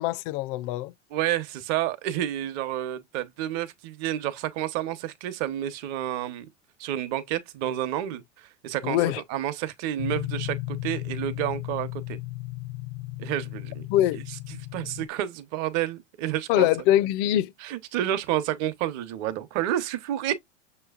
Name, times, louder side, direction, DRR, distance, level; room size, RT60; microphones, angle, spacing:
voice 1, 0.0-0.9 8.8-9.2 13.9-14.2 16.5-17.5, left 13 dB, 50° left, 0.5 m, -23 dB
voice 2, 1.1-6.5 6.8-9.0 9.3-12.2 13.2-13.9 14.7-16.7 17.6-20.4, right 12 dB, 45° right, 0.9 m, -30 dB
sound 1, 10.0-15.1, left 17 dB, 85° left, 0.8 m, -35 dB
6.3 x 3.1 x 2.3 m
supercardioid pair, 125°, 38 cm